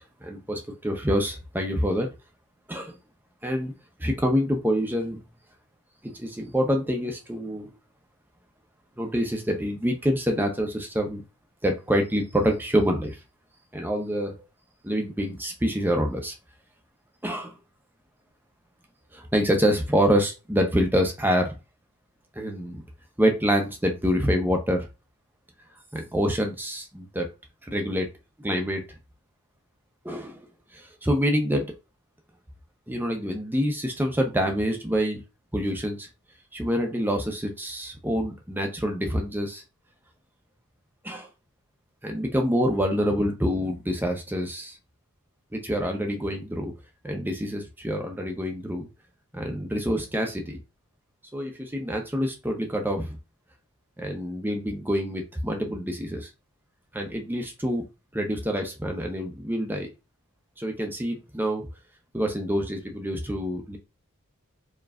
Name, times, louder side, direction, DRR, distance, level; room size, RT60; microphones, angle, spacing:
voice 1, 0.2-2.1 2.7-3.0 3.4-3.7 4.0-5.3 6.0-7.7 9.0-11.2 11.6-13.2 13.7-14.3 14.8-16.3 17.2-17.6 19.1-21.5 22.4-22.8 23.2-24.9 25.9-27.3 27.6-28.1 28.4-28.8 30.0-30.4 30.7-31.7 32.9-35.2 35.5-36.1 36.5-39.6 41.0-41.3 42.0-44.8 45.5-46.7 47.0-48.9 49.3-50.6 51.3-53.2 54.0-56.3 56.9-57.8 58.1-59.9 60.6-61.7 62.1-63.8, equal, 10° right, 2 dB, 0.7 m, -26 dB
4.7 x 3.0 x 2.5 m, 0.27 s
head